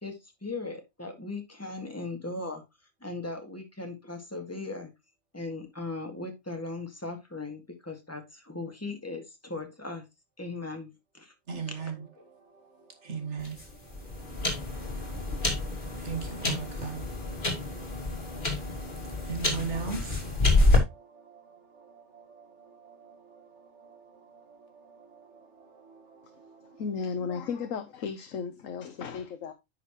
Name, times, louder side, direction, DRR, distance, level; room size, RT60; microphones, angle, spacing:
voice 1, 0.0-2.6 3.0-4.9 5.3-10.0 10.4-11.3 13.7-13.8, left 3 dB, 10° left, 1.9 m, -38 dB
voice 2, 11.5-12.1 12.5-26.8, right 5 dB, 60° right, 2.1 m, -41 dB
sound 1, 13.4-20.8, left 2 dB, 40° left, 2.4 m, -28 dB
voice 3, 26.8-29.5, left 6 dB, 80° left, 1.2 m, -34 dB
9.9 x 5.9 x 3.0 m
omnidirectional pair, 1.3 m